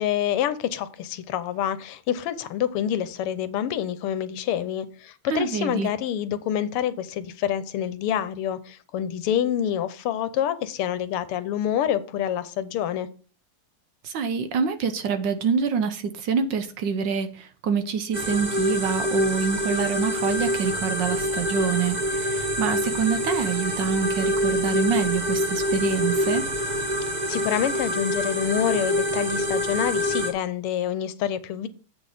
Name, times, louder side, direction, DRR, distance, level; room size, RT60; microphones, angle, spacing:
voice 1, 0.0-13.1 27.3-31.7, left 10 dB, 85° left, 1.7 m, -27 dB
voice 2, 5.3-5.9 14.0-26.4, right 6 dB, 65° right, 1.3 m, -26 dB
sound 1, 18.1-30.3, equal, 30° right, 0.8 m, -26 dB
8.0 x 6.3 x 5.0 m
omnidirectional pair, 2.4 m